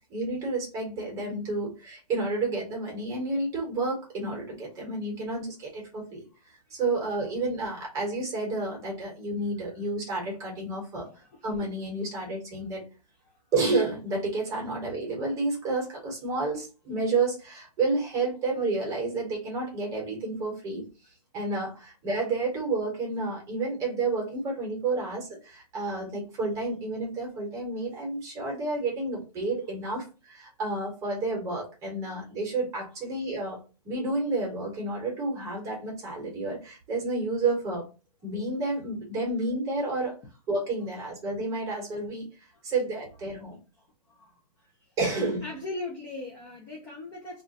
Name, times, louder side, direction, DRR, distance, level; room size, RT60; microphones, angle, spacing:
voice 1, 0.1-11.0 11.4-12.9 13.5-20.9 21.3-33.6 33.8-37.9 38.2-40.1 40.5-42.2 42.6-43.6 45.0-45.5, right 3 dB, 15° right, -1 dB, 1.0 m, -30 dB
voice 2, 11.0-11.4 44.1-44.3 45.4-47.4, left 2 dB, 15° left, -2 dB, 0.4 m, -38 dB
2.4 x 2.1 x 3.9 m, 0.32 s
hypercardioid pair, 160°, 21 cm